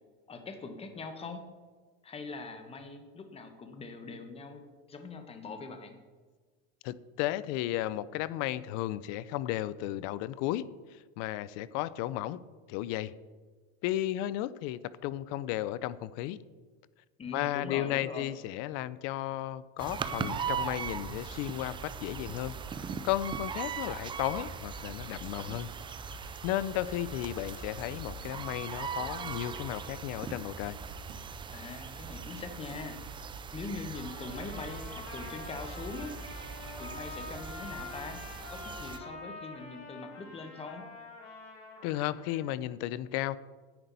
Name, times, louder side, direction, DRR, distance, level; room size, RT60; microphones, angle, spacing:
voice 1, 0.3-1.4 2.0-4.6 4.9-6.0 17.2-18.3 31.5-33.0 33.5-36.1 36.7-40.9, left 4 dB, 20° left, 7 dB, 1.1 m, -42 dB
voice 2, 6.8-12.4 12.7-13.1 13.8-16.4 17.3-22.6 23.0-25.7 26.4-30.8 41.8-43.4, left 14 dB, 55° left, 18 dB, 0.5 m, -34 dB
sound 1, 19.8-39.0, right 6 dB, 15° right, 0.5 m, -40 dB
sound 2, 28.2-28.7 29.2-29.3 31.1-31.5 32.2-32.3 32.7-33.1 33.5-33.6, right 5 dB, 85° right, 1.6 m, -55 dB
Trumpet, 33.9-42.4, left 3 dB, 80° left, 2.8 m, -46 dB
10.0 x 9.1 x 4.0 m, 1.4 s
supercardioid pair, 135°, 32 cm